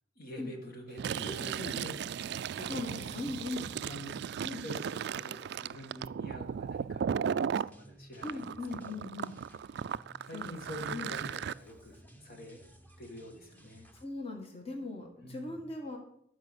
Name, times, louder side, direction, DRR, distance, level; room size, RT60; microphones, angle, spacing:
voice 1, 0.2-9.0 10.2-12.7 13.0-13.9 15.2-15.5, left 1 dB, 55° left, 3 dB, 2.0 m, -47 dB
Fill (with liquid), 0.9-7.7 8.2-11.5, right 7 dB, 60° right, 0.3 m, -36 dB
voice 2, 1.3-1.7 2.7-3.7 4.4-4.6 8.2-9.4 10.3-10.6 10.9-11.1 13.9-16.0, left 2 dB, 35° left, 2 dB, 1.8 m, -39 dB
sound 1, 7.7-14.1, right 1 dB, 10° left, 1.1 m, -58 dB
13.5 x 4.9 x 8.1 m, 0.72 s
head